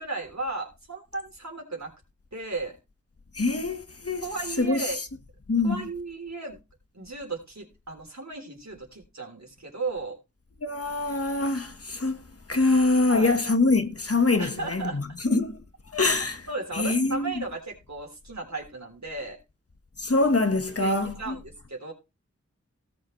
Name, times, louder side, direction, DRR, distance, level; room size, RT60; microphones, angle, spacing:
voice 1, 0.0-1.9 2.3-2.8 4.2-5.0 5.6-6.6 6.9-10.2 13.1-13.4 14.4-15.0 16.5-19.4 20.7-21.9, right 3 dB, 70° right, 3.6 m, -35 dB
voice 2, 3.3-4.2 4.6-4.9 5.5-5.8 10.6-12.2 12.5-15.6 15.9-16.5 16.7-17.4 20.0-21.3, left 3 dB, 55° left, 1.5 m, -24 dB
17.5 x 6.7 x 3.2 m
wide cardioid pair, 50°, 29 cm